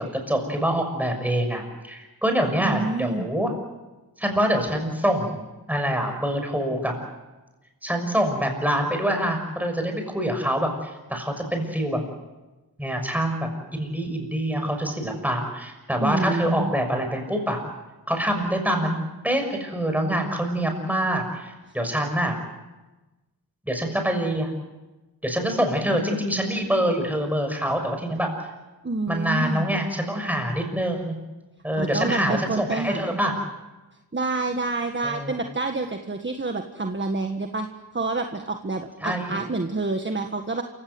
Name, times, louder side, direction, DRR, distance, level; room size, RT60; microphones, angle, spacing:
voice 1, 0.0-3.5 4.2-6.9 7.8-12.0 12.8-17.6 18.1-22.4 23.7-24.5 25.2-28.3 29.1-31.1 31.6-33.3 35.0-35.4 39.0-39.4, equal, 5° right, 4 dB, 6.4 m, -25 dB
voice 2, 2.6-3.3 16.0-16.7 28.8-29.6 31.8-33.2 34.1-37.7 37.9-40.6, right 3 dB, 30° right, 4 dB, 1.6 m, -28 dB
28.0 x 17.0 x 7.9 m, 1.1 s
wide cardioid pair, 75°, 38 cm